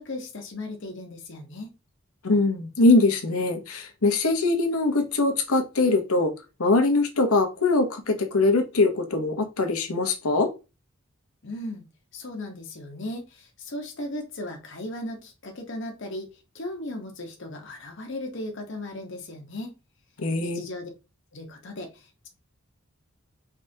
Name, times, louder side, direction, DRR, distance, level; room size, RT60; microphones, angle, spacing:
voice 1, 0.0-1.7 11.4-11.9 12.1-16.3 16.5-19.7 20.4-20.9 21.3-22.3, left 1 dB, 55° left, 2 dB, 1.0 m, -36 dB
voice 2, 2.2-6.3 6.6-10.5 20.2-20.6, left 2 dB, 80° left, 6 dB, 1.0 m, -22 dB
4.8 x 3.4 x 2.8 m, 0.28 s
head